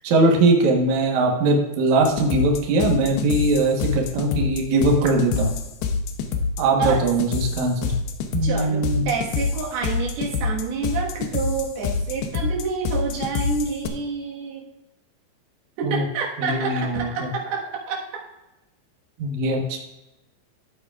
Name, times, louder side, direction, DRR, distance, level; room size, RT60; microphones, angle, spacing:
voice 1, 0.0-5.5 6.6-7.9 8.3-9.0 15.8-16.0 16.4-17.3 19.2-19.8, right 2 dB, 90° right, 0 dB, 1.6 m, -21 dB
sound 1, 2.0-13.9, left 5 dB, 80° left, 2.4 m, -26 dB
voice 2, 8.4-14.7 15.8-18.0, right 5 dB, 65° right, -2 dB, 3.1 m, -28 dB
14.0 x 8.4 x 2.4 m, 0.98 s
omnidirectional pair, 5.5 m